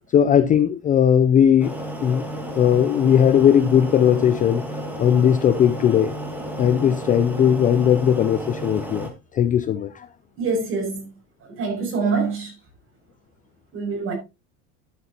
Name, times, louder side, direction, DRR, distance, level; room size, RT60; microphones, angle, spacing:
voice 1, 0.1-1.8 2.0-2.2 2.5-4.6 5.0-6.1 6.6-9.1 9.3-10.1, left 9 dB, 25° left, 0.4 m, -18 dB
sound 1, 1.6-9.1, right 1 dB, 5° right, 2.3 m, -32 dB
voice 2, 10.4-11.1 11.4-12.5 13.7-14.1, right 4 dB, 35° right, 6.2 m, -25 dB
12.0 x 8.2 x 2.9 m
supercardioid pair, 140°, 35 cm